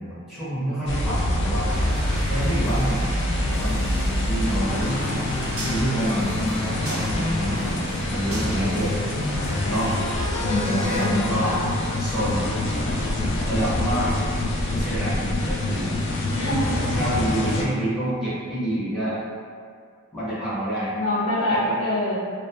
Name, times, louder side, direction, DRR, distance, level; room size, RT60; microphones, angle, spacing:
voice 1, 0.0-1.7 2.3-5.0 5.7-9.0 9.7-9.9 10.4-11.5 12.0-12.5 13.5-14.1 14.7-15.9 16.9-19.2 20.1-20.9 21.5-21.7, right 1 dB, ahead, -12 dB, 0.6 m, -28 dB
sound 1, 0.9-17.6, left 1 dB, 55° left, 0.3 m, -25 dB
sound 2, 1.7-11.1, right 1 dB, 70° right, 0.7 m, -37 dB
voice 2, 10.4-11.6 16.4-16.9 20.9-22.2, left 1 dB, 80° left, -8 dB, 0.8 m, -25 dB
2.3 x 2.1 x 2.7 m, 2.2 s
head